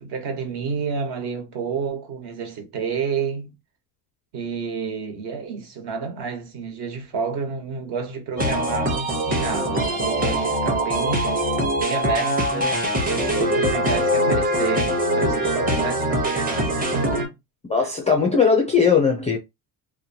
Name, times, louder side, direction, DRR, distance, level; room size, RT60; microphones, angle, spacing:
voice 1, 0.0-3.5 4.3-17.3 17.8-17.9, right 5 dB, 55° right, 1.2 m, -30 dB
sound 1, 8.4-17.3, equal, 20° right, 0.7 m, -23 dB
voice 2, 17.7-19.4, left 5 dB, 15° left, 0.3 m, -19 dB
2.9 x 2.1 x 2.7 m
cardioid pair, 135°, 48 cm